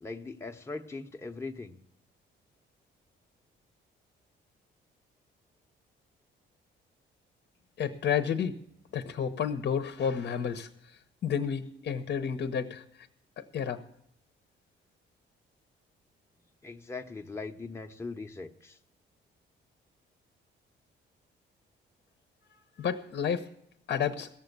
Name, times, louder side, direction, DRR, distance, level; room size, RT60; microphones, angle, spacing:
voice 1, 0.0-1.8 16.6-18.8, left 3 dB, 15° left, 4 dB, 0.8 m, -40 dB
voice 2, 7.8-8.6 8.9-10.7 11.2-13.1 13.4-13.8 22.8-23.5 23.9-24.3, left 7 dB, 60° left, 9 dB, 0.9 m, -31 dB
16.5 x 7.1 x 6.7 m, 0.73 s
cardioid pair, 90°, 20 cm